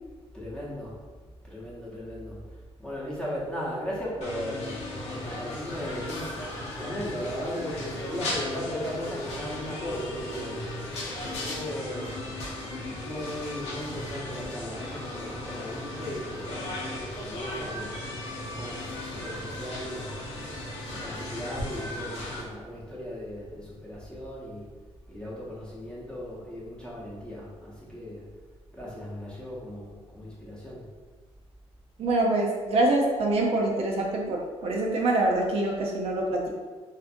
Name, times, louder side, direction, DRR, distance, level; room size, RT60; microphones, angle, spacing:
voice 1, 0.3-1.0 1.4-6.5 6.8-10.7 11.2-12.3 12.9-18.0 18.5-20.1 20.9-24.7 25.1-28.2 28.7-30.9, left 1 dB, 10° left, -6 dB, 0.7 m, -37 dB
sound 1, 4.2-22.4, left 1 dB, 75° left, 0.8 m, -36 dB
voice 2, 32.0-36.5, right 2 dB, 65° right, -1 dB, 0.4 m, -25 dB
2.6 x 2.5 x 2.4 m, 1.4 s
cardioid pair, 120°, 11 cm